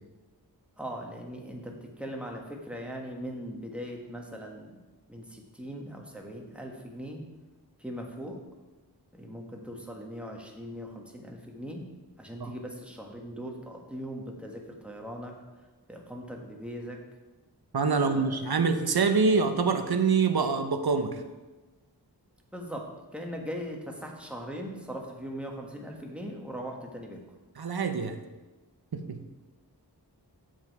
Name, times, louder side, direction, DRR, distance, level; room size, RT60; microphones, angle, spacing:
voice 1, 0.8-4.8 5.1-7.2 7.8-8.4 9.1-11.8 12.2-17.0 17.9-18.5 22.5-27.2, equal, 5° right, 0 dB, 1.5 m, -40 dB
voice 2, 17.7-21.2 27.6-28.2 28.9-29.2, right 5 dB, 65° right, 8 dB, 0.8 m, -25 dB
7.4 x 7.3 x 4.8 m, 1.1 s
wide cardioid pair, 50°, 41 cm